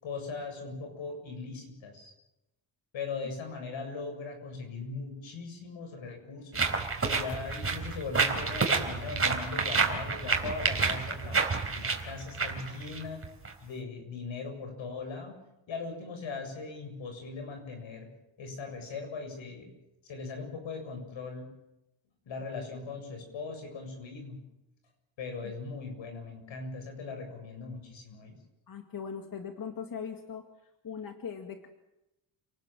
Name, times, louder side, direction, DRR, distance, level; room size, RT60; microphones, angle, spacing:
voice 1, 0.0-2.1 2.9-6.7 7.0-11.4 11.7-13.2 13.6-15.4 15.7-18.1 18.4-19.7 20.0-21.5 22.3-24.4 25.2-28.3, left 4 dB, 80° left, 5 dB, 7.6 m, -39 dB
sound 1, 6.5-13.5, right 4 dB, 30° right, 4.1 m, -29 dB
voice 2, 28.7-30.4 30.8-31.7, left 7 dB, 45° left, 5 dB, 2.2 m, -39 dB
29.0 x 19.0 x 7.6 m, 0.89 s
cardioid pair, 115°, 46 cm